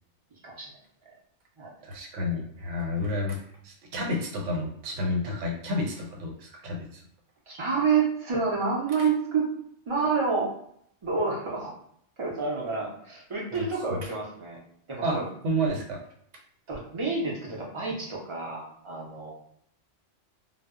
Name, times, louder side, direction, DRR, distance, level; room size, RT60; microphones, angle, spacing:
voice 1, 1.8-3.4 3.6-7.0 13.5-14.1 15.0-15.2 15.4-16.0, left 1 dB, 85° right, 0 dB, 1.0 m, -30 dB
voice 2, 7.5-9.4 9.9-10.5 11.0-11.7 12.2-14.6 14.9-15.3 16.7-19.3, right 4 dB, 45° right, -3 dB, 0.4 m, -28 dB
2.0 x 2.0 x 3.5 m, 0.68 s
omnidirectional pair, 1.2 m